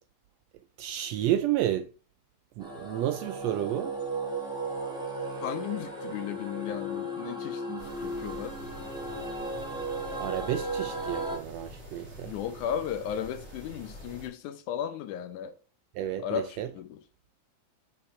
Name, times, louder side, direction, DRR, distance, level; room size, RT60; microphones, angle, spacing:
voice 1, 0.8-1.9 2.6-4.0 10.2-12.3 16.0-16.7, right 12 dB, 85° right, 1.5 m, -31 dB
sound 1, 2.6-11.4, right 2 dB, ahead, 1.4 m, -35 dB
voice 2, 5.4-8.6 12.2-15.5 16.2-17.0, left 9 dB, 80° left, 2.3 m, -35 dB
sound 2, 7.8-14.3, equal, 20° right, 3.3 m, -46 dB
8.8 x 5.8 x 3.3 m
omnidirectional pair, 3.5 m